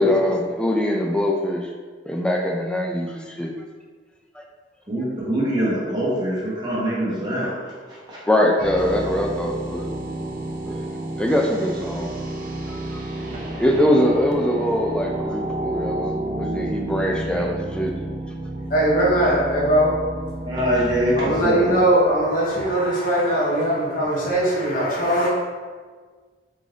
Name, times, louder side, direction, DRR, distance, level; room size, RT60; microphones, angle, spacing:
voice 1, 0.0-1.7 2.1-3.5 4.3-4.4 8.3-9.8 10.6-10.8 11.2-12.1 12.7-13.0 13.6-17.9, left 1 dB, 5° left, 1 dB, 0.3 m, -22 dB
voice 2, 4.9-7.5 7.9-8.2 13.7-13.9 20.4-21.8, equal, 25° right, -8 dB, 0.9 m, -24 dB
sound 1, 8.6-22.7, right 1 dB, 50° right, 0.5 m, -31 dB
voice 3, 18.7-19.9 21.2-25.3, right 1 dB, 50° left, -6 dB, 0.7 m, -20 dB
3.6 x 2.6 x 3.2 m, 1.5 s
head